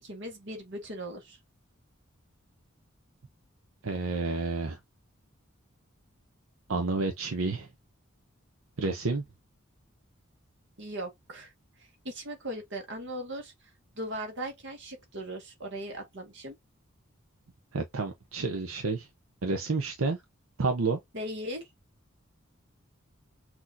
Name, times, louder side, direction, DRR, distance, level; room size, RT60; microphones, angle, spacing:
voice 1, 0.0-1.4 10.8-11.5 12.0-13.5 14.0-16.6 21.1-21.7, right 1 dB, 60° right, 1.7 m, -38 dB
voice 2, 3.8-4.8 6.7-7.7 8.8-9.2 17.7-19.1 19.4-20.2 20.6-21.0, right 3 dB, 80° right, 0.7 m, -30 dB
6.1 x 2.9 x 2.6 m
head